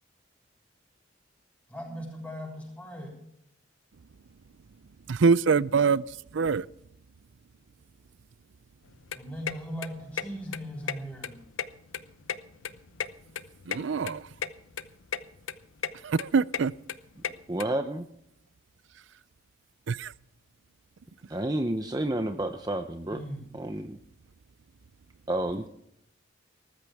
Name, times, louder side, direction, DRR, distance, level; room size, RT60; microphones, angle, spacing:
voice 1, 1.7-3.1 9.1-11.4 23.1-23.4, equal, 5° left, -1 dB, 6.8 m, -38 dB
voice 2, 5.1-6.0 6.3-6.6 13.7-14.2 16.0-16.7 19.9-20.1, right 5 dB, 65° right, 20 dB, 0.5 m, -24 dB
sound 1, 8.9-17.6, left 7 dB, 75° left, 0.8 m, -36 dB
voice 3, 17.5-18.1 21.3-23.2 23.5-24.0 25.3-25.7, right 1 dB, 20° right, 7 dB, 0.7 m, -30 dB
19.0 x 14.5 x 3.5 m, 0.74 s
head